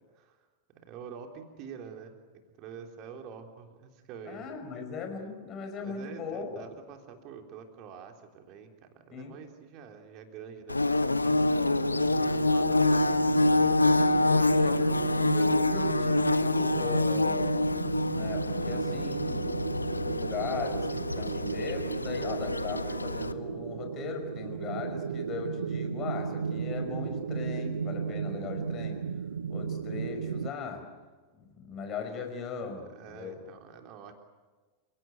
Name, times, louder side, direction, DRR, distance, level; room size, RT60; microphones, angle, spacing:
voice 1, 0.1-0.5 0.7-2.2 2.6-4.5 4.7-4.8 5.8-13.7 14.2-14.9 32.9-34.1, right 7 dB, 40° right, 4 dB, 3.6 m, -47 dB
voice 2, 4.3-6.7 9.1-9.4 14.6-17.5 18.1-19.5 20.0-29.1 29.5-30.9 31.4-33.4, left 5 dB, 30° left, 5 dB, 5.5 m, -39 dB
Bird / Buzz, 10.7-23.3, left 2 dB, 80° left, 0.8 m, -27 dB
sound 1, 11.3-30.5, right 6 dB, 70° right, 0.7 m, -34 dB
29.5 x 18.0 x 9.2 m, 1.3 s
figure-of-eight pair, 90°, 0 cm